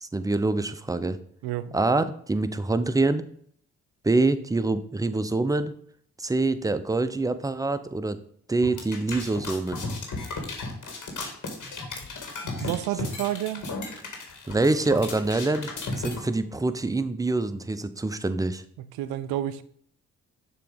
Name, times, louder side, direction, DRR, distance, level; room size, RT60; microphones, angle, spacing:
voice 1, 0.0-1.2 1.7-3.3 4.0-5.7 6.2-8.2 8.5-9.9 14.5-18.6, right 2 dB, 10° right, 0.5 m, -25 dB
voice 2, 1.4-1.7 12.4-13.7 18.8-19.6, right 13 dB, 75° right, 0.5 m, -30 dB
sound 1, 8.6-16.2, left 3 dB, 50° left, 1.9 m, -34 dB
6.8 x 3.1 x 5.0 m
hypercardioid pair, 45°, 38 cm